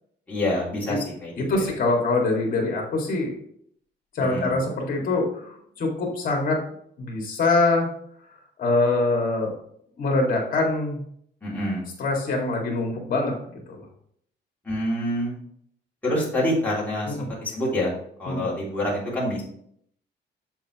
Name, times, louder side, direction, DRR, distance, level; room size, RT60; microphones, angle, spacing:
voice 1, 0.3-1.6 4.2-4.5 11.4-11.8 14.6-15.3 16.0-17.9 18.2-19.4, left 1 dB, 10° left, -7 dB, 2.8 m, -27 dB
voice 2, 1.4-3.3 4.1-6.6 7.0-7.9 8.6-9.5 10.0-11.0 12.0-13.3 13.7-13.8 17.1-17.3 18.3-18.5, left 2 dB, 45° left, 1 dB, 2.4 m, -24 dB
7.4 x 6.9 x 3.1 m, 0.67 s
cardioid pair, 175°, 20 cm